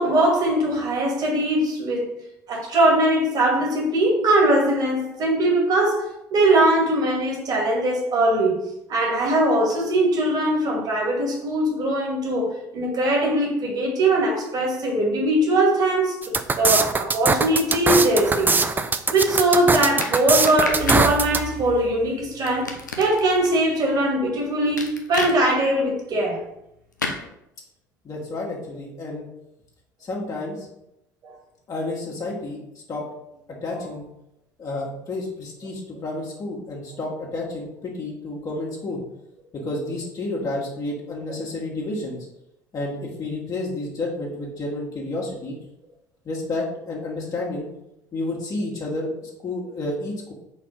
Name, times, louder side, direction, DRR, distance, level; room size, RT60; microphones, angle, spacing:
voice 1, 0.0-2.2 2.5-8.6 8.9-18.5 19.1-26.4 31.2-31.3 33.8-33.9, right 1 dB, 45° right, -1 dB, 2.1 m, -21 dB
sound 1, 16.2-21.4, right 4 dB, 20° right, 0.5 m, -21 dB
sound 2, 20.0-21.1 22.5-23.5 24.8-25.3 27.0-27.2, left 3 dB, 85° left, 0.6 m, -29 dB
sound 3, 20.7-25.2, equal, 60° right, 1.4 m, -38 dB
voice 2, 28.0-29.3 30.0-30.7 31.7-32.6 32.9-33.0 33.6-34.0 34.6-39.0 39.6-42.2 42.7-45.6 46.2-47.7 48.1-50.3, left 2 dB, 40° left, -3 dB, 1.8 m, -30 dB
4.7 x 4.2 x 5.4 m, 0.83 s
figure-of-eight pair, 60°, 10 cm